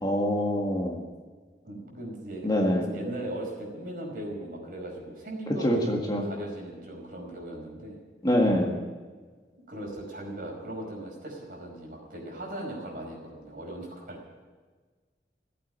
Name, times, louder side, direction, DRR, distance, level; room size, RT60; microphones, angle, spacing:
voice 1, 0.0-1.0 2.4-2.9 5.5-6.2 8.2-8.7, equal, 20° left, 0 dB, 1.8 m, -25 dB
voice 2, 1.6-2.5 2.8-8.0 9.7-14.2, right 1 dB, 50° right, -1 dB, 5.0 m, -38 dB
16.5 x 8.5 x 9.9 m, 1.4 s
head